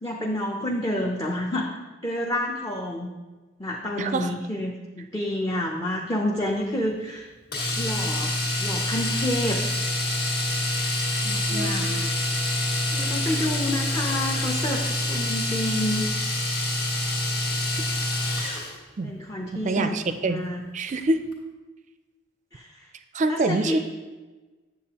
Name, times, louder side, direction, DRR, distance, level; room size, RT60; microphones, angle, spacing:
voice 1, 0.0-1.7 2.0-3.1 3.6-7.3 7.8-9.6 11.2-12.1 12.9-14.8 15.1-16.1 19.0-20.0 20.2-20.6 22.5-22.7 23.3-23.8, left 1 dB, 20° left, -2 dB, 0.6 m, -29 dB
voice 2, 4.0-4.3 11.5-12.1 19.0-19.1 19.5-20.4 20.7-21.2 23.1-23.8, right 2 dB, 35° right, 9 dB, 0.4 m, -26 dB
Domestic sounds home sounds, 7.5-18.8 20.9-21.0 21.3-21.4, left 1 dB, 55° left, 1.7 m, -26 dB
8.6 x 7.5 x 2.9 m, 1.2 s
head